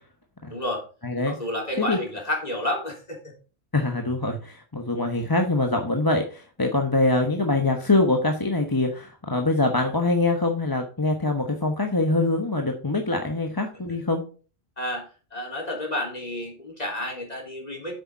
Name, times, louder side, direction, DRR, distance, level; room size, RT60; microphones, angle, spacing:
voice 1, 0.5-0.8 1.3-3.3 14.8-15.1 15.3-17.9, left 1 dB, 35° left, 0 dB, 3.8 m, -30 dB
voice 2, 1.0-1.4 1.8-2.0 3.7-14.2, left 2 dB, 20° left, 3 dB, 1.1 m, -24 dB
8.4 x 6.8 x 5.4 m, 0.36 s
omnidirectional pair, 1.1 m